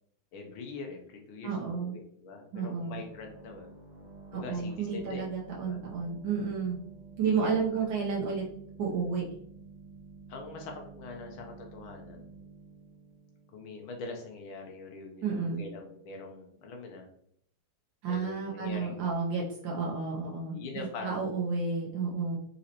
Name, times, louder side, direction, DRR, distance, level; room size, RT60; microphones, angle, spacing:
voice 1, 0.3-3.7 4.3-5.3 5.6-5.8 7.2-8.2 10.3-12.3 13.5-17.1 18.1-19.1 20.5-21.3, left 3 dB, 80° left, 2 dB, 1.5 m, -43 dB
voice 2, 1.4-1.9 2.5-3.0 4.3-6.8 7.2-8.4 8.8-9.3 15.2-15.6 18.0-22.4, right 5 dB, 75° right, -3 dB, 1.5 m, -31 dB
sound 1, 2.8-14.2, right 4 dB, 45° left, 1.7 m, -51 dB
4.1 x 3.9 x 2.8 m, 0.67 s
omnidirectional pair, 2.2 m